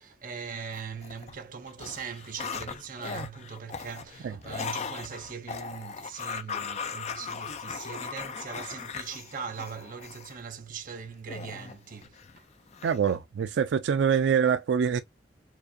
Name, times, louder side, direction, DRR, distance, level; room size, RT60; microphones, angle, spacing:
voice 1, 0.0-12.4, right 6 dB, 50° right, 0.7 m, -40 dB
sound 1, 0.7-1.4 1.7-10.4 11.3-12.4 12.7-13.2, left 6 dB, 40° left, 0.4 m, -38 dB
voice 2, 12.8-15.0, right 7 dB, 85° right, 0.3 m, -25 dB
4.5 x 2.5 x 2.6 m
head